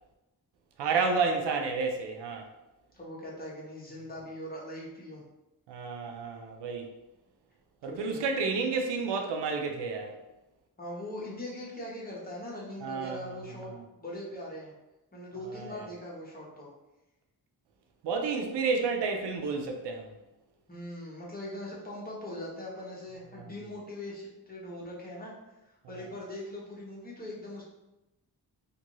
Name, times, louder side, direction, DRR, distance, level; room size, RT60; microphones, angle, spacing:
voice 1, 0.8-2.5 5.7-6.9 7.8-10.1 12.8-13.8 15.5-15.9 18.0-20.1 23.4-23.5 25.9-26.0, right 4 dB, 85° right, 3 dB, 0.5 m, -31 dB
voice 2, 2.9-5.2 7.8-8.2 10.8-13.7 14.0-14.7 15.1-16.7 20.7-25.3 25.9-27.6, left 1 dB, 20° left, -5 dB, 1.1 m, -41 dB
2.6 x 2.6 x 3.0 m, 0.97 s
cardioid pair, 65°, 41 cm